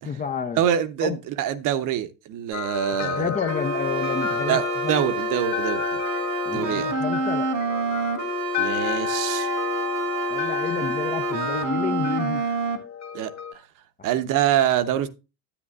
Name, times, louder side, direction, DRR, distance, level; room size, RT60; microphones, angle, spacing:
voice 1, 0.0-0.6 1.0-1.2 3.0-5.0 6.5-7.5 10.3-12.4, left 6 dB, 15° left, 0.6 m, -30 dB
voice 2, 0.5-3.3 4.5-6.0 6.5-6.9 8.6-9.5 13.1-13.3 14.0-15.1, right 11 dB, 40° right, 0.9 m, -25 dB
sound 1, 2.5-13.5, left 7 dB, 35° left, 1.5 m, -32 dB
sound 2, 3.5-12.8, right 2 dB, 80° right, 1.7 m, -27 dB
10.0 x 9.2 x 2.4 m
hypercardioid pair, 80°, 49 cm